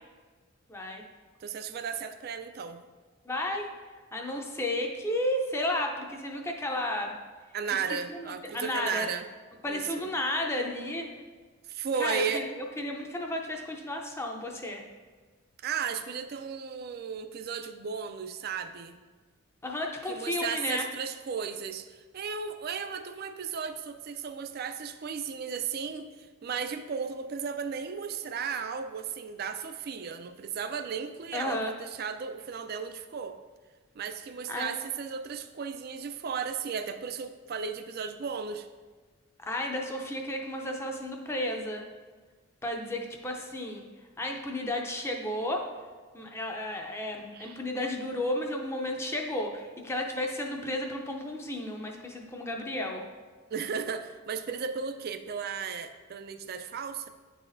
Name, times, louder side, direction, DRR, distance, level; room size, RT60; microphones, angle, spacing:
voice 1, 0.7-1.0 3.2-3.7 4.1-7.1 8.1-9.1 9.6-11.1 12.0-14.8 19.6-20.8 31.3-31.7 34.5-34.7 39.4-41.8 42.6-43.8 44.2-45.7 46.1-53.0, left 1 dB, 10° left, 2 dB, 0.5 m, -33 dB
voice 2, 1.4-2.8 7.5-9.3 9.7-10.1 11.7-12.4 15.6-18.9 20.1-33.4 34.0-38.7 47.3-47.6 53.5-57.1, right 6 dB, 45° right, 9 dB, 0.3 m, -35 dB
9.7 x 4.0 x 2.6 m, 1.4 s
head